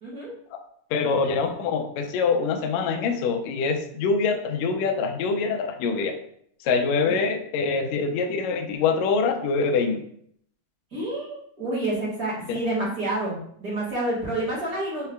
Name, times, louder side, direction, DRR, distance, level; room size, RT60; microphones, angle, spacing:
voice 1, 0.9-6.2 6.6-10.0 12.5-12.6, left 4 dB, 85° left, 5 dB, 1.6 m, -24 dB
voice 2, 10.9-15.1, right 1 dB, 45° right, -7 dB, 1.2 m, -28 dB
5.5 x 2.2 x 3.4 m, 0.65 s
omnidirectional pair, 3.7 m